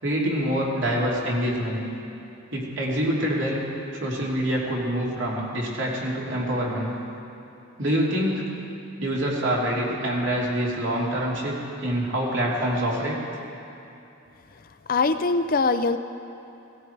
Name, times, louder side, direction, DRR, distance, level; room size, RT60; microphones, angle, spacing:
voice 1, 0.0-1.9 2.5-3.6 4.0-6.9 7.8-8.5 9.0-13.2, equal, 65° right, -4 dB, 3.1 m, -26 dB
voice 2, 14.9-16.0, left 3 dB, 45° left, 10 dB, 0.5 m, -22 dB
17.0 x 16.5 x 4.6 m, 2.8 s
head